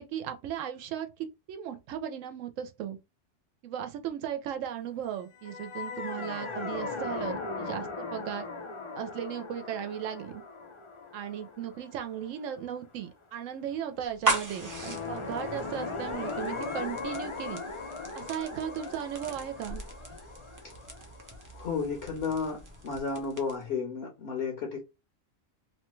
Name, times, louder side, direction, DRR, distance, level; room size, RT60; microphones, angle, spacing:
voice 1, 0.0-3.0 3.6-8.5 9.0-10.4 11.1-17.6 18.1-19.8, right 9 dB, 85° right, 0.9 m, -36 dB
sound 1, 5.3-12.6 14.5-22.2, left 4 dB, 45° left, 0.4 m, -39 dB
sound 2, 14.0-23.7, right 3 dB, 30° right, 0.3 m, -38 dB
voice 2, 21.5-24.8, left 5 dB, 65° left, 0.9 m, -33 dB
2.9 x 2.2 x 3.0 m
omnidirectional pair, 1.3 m